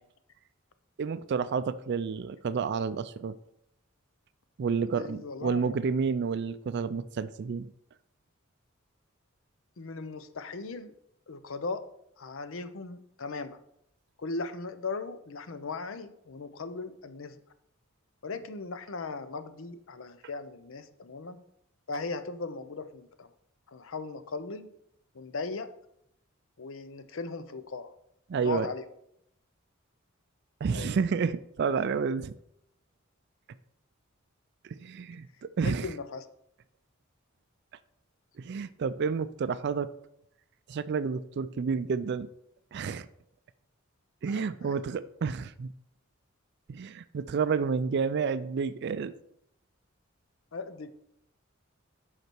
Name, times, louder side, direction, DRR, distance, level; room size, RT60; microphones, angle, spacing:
voice 1, 1.0-3.3 4.6-7.7 28.3-28.7 30.6-32.3 34.6-35.3 35.6-35.9 38.4-39.9 40.7-42.3 42.7-43.1 44.2-45.7 46.7-49.1, right 5 dB, 55° right, 14 dB, 0.4 m, -30 dB
voice 2, 4.9-5.8 9.8-11.0 11.3-11.9 12.2-13.6 14.2-17.4 18.2-21.4 21.9-23.3 23.7-24.7 25.1-25.7 26.6-27.9 28.4-28.9 30.7-31.0 35.6-36.3 44.3-44.8 50.5-50.9, left 4 dB, 70° left, 12 dB, 0.6 m, -38 dB
8.1 x 5.8 x 4.5 m, 0.77 s
head